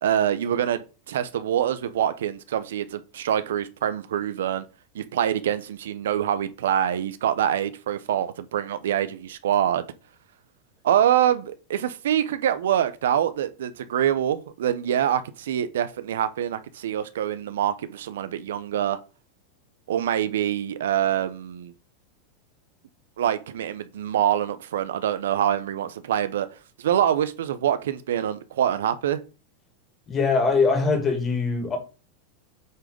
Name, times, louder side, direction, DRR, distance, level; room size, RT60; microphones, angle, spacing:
voice 1, 0.0-4.6 4.9-9.8 10.8-19.0 19.9-21.7 23.2-26.5 26.8-29.2, right 10 dB, 85° right, 0.8 m, -25 dB
voice 2, 30.1-31.8, left 4 dB, 25° left, 2.6 m, -22 dB
8.1 x 3.9 x 5.2 m
supercardioid pair, 125°, 0 cm